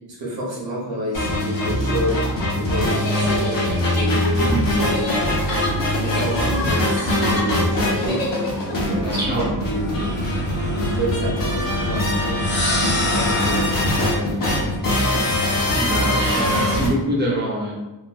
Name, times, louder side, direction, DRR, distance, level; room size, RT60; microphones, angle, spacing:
voice 1, 0.2-2.3 2.5-3.6 3.9-5.4 6.0-8.2 8.7-10.2 10.7-12.4 12.8-15.1, right 1 dB, 85° right, -4 dB, 1.0 m, -29 dB
sound 1, 1.1-16.9, left 1 dB, 50° left, 0.8 m, -22 dB
sound 2, 2.7-8.7, left 1 dB, 75° left, 0.9 m, -30 dB
voice 2, 9.0-9.5 15.7-17.7, equal, 25° right, -5 dB, 0.7 m, -24 dB
sound 3, 9.8-11.1 12.2-13.9 15.3-16.6, left 1 dB, 30° left, 0.4 m, -29 dB
3.0 x 2.7 x 2.2 m, 1.1 s
wide cardioid pair, 170°, 43 cm